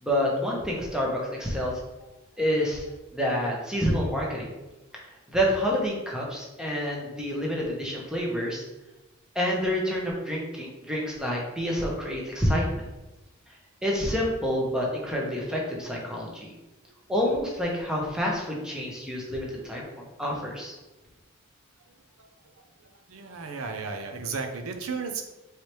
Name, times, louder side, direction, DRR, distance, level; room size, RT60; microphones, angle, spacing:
voice 1, 0.0-1.7 2.4-2.8 3.1-4.5 5.3-8.7 9.3-12.8 13.8-16.5 17.1-19.9 20.2-20.8, equal, 5° right, -3 dB, 0.8 m, -28 dB
voice 2, 23.1-25.2, right 4 dB, 75° right, 6 dB, 0.6 m, -34 dB
4.5 x 3.2 x 3.1 m, 1.1 s
head